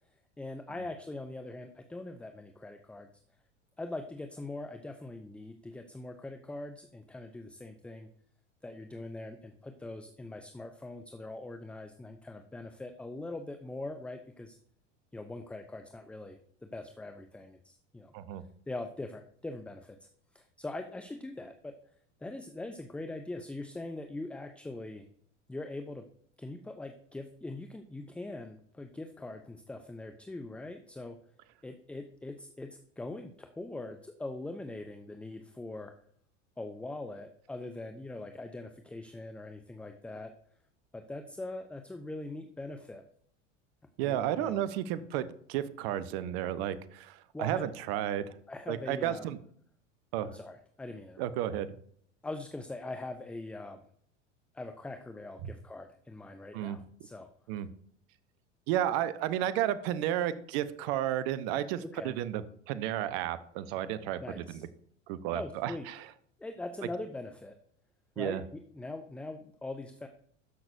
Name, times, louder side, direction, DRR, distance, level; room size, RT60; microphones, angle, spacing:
voice 1, 0.4-3.1 3.8-8.1 8.6-14.6 15.1-18.1 18.7-20.0 20.3-21.7 22.2-25.1 25.5-26.0 26.4-31.2 31.6-35.9 36.6-40.3 40.9-43.0 44.0-44.6 47.3-47.6 48.5-49.3 50.2-51.3 52.2-53.8 54.5-57.3 61.9-62.1 64.2-64.6 65.3-65.9 66.4-67.5 68.2-70.1, left 2 dB, 5° left, 7 dB, 0.3 m, -42 dB
voice 2, 44.0-48.3 48.7-49.4 50.1-50.3 51.2-51.7 55.4-55.5 56.5-56.8 57.5-57.7 58.7-64.7 65.1-66.0 68.2-68.4, right 11 dB, 55° right, 14 dB, 0.8 m, -32 dB
13.0 x 5.9 x 2.6 m, 0.63 s
hypercardioid pair, 85°, 37 cm